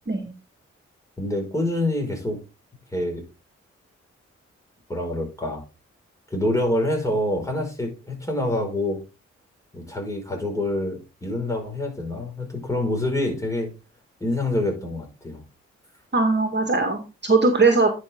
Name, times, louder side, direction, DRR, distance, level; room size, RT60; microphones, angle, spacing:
voice 1, 1.2-2.4 2.9-3.2 4.9-5.6 6.3-9.0 9.7-13.7 14.2-15.4, left 1 dB, 10° left, 2 dB, 5.1 m, -26 dB
voice 2, 16.1-17.9, right 3 dB, 35° right, 4 dB, 1.9 m, -20 dB
10.5 x 5.6 x 3.6 m, 0.29 s
supercardioid pair, 40°, 30 cm